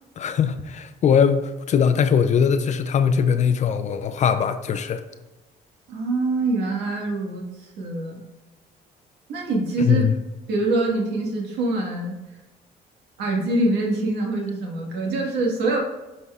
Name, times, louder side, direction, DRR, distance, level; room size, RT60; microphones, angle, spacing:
voice 1, 0.2-5.0 9.8-10.1, left 7 dB, 45° left, 10 dB, 0.5 m, -20 dB
voice 2, 5.9-8.2 9.3-10.1 10.5-12.4 13.2-15.8, right 2 dB, 80° right, -2 dB, 1.7 m, -24 dB
9.5 x 5.4 x 2.4 m, 1.1 s
cardioid pair, 110°, 17 cm